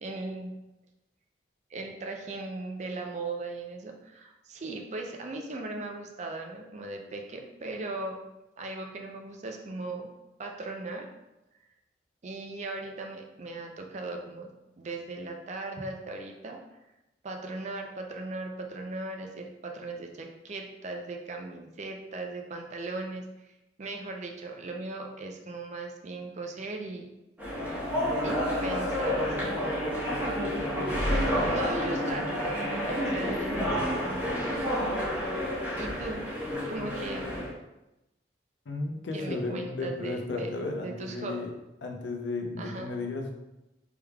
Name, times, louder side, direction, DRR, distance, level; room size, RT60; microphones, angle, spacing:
voice 1, 0.0-0.5 1.7-8.2 8.6-10.1 10.4-11.1 12.2-14.5 14.8-16.6 17.2-23.5 23.8-27.1 28.2-29.9 31.1-34.2 35.8-36.2 36.7-37.2 39.1-40.5 40.8-41.4 42.6-42.9, right 2 dB, 40° right, 2 dB, 0.4 m, -38 dB
sound 1, 27.4-37.5, equal, 10° right, 1.0 m, -29 dB
voice 2, 38.7-41.5 41.8-43.3, left 3 dB, 80° left, 1 dB, 0.6 m, -34 dB
3.4 x 3.2 x 2.2 m, 0.94 s
head